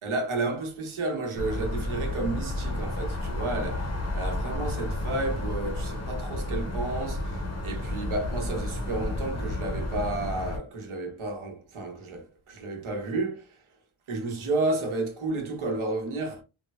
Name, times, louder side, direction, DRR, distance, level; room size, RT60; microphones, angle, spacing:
voice 1, 0.0-13.6 14.1-16.4, right 2 dB, 80° right, 0.9 m, -32 dB
sound 1, 1.4-10.6, left 1 dB, 35° left, 0.6 m, -31 dB
3.2 x 2.1 x 2.3 m
wide cardioid pair, 140°, 48 cm